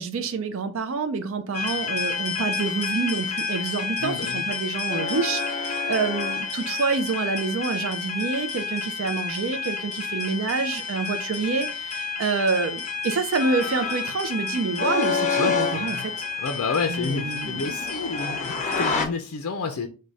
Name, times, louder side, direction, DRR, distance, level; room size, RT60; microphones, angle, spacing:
voice 1, 0.0-16.1 16.9-17.8, right 4 dB, 60° right, 0.4 m, -27 dB
sound 1, 1.5-19.1, left 4 dB, 30° left, 0.8 m, -29 dB
voice 2, 4.0-4.5 15.4-16.1 16.4-19.9, left 4 dB, 70° left, 0.5 m, -30 dB
4.8 x 2.2 x 3.9 m
head